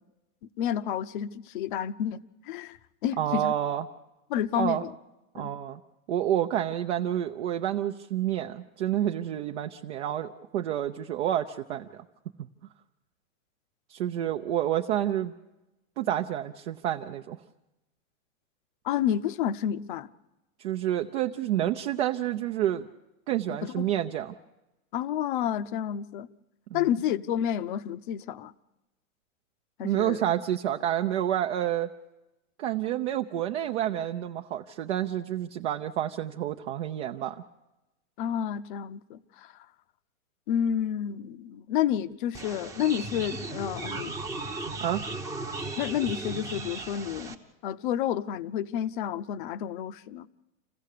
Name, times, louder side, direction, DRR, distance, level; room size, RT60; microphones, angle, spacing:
voice 1, 0.6-2.2 2.4-3.5 4.3-4.9 5.4-5.5 18.8-20.1 23.6-23.9 24.9-26.3 26.7-28.5 29.8-30.2 38.2-39.7 40.5-44.2 45.8-47.4 47.6-50.3, left 10 dB, 40° left, 0.6 m, -30 dB
voice 2, 3.2-3.8 4.6-4.8 5.3-5.8 6.1-12.0 13.9-15.3 16.0-17.4 20.6-22.9 23.3-24.3 26.7-26.8 29.8-31.9 32.6-37.4 44.8-45.0, right 11 dB, 55° right, 0.8 m, -29 dB
sound 1, 42.3-47.3, right 3 dB, 10° right, 0.8 m, -36 dB
27.0 x 15.5 x 6.7 m
supercardioid pair, 155°, 40 cm